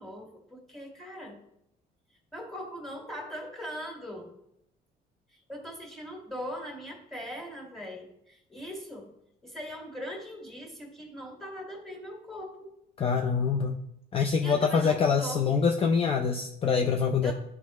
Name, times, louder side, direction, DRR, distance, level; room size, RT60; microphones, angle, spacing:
voice 1, 0.0-1.4 2.3-4.3 5.3-9.1 9.4-12.7 14.4-15.5 17.2-17.3, equal, ahead, 1 dB, 1.9 m, -40 dB
voice 2, 13.0-13.8 14.1-17.3, left 5 dB, 35° left, 3 dB, 0.5 m, -25 dB
10.5 x 4.7 x 3.1 m, 0.78 s
cardioid pair, 110°, 17 cm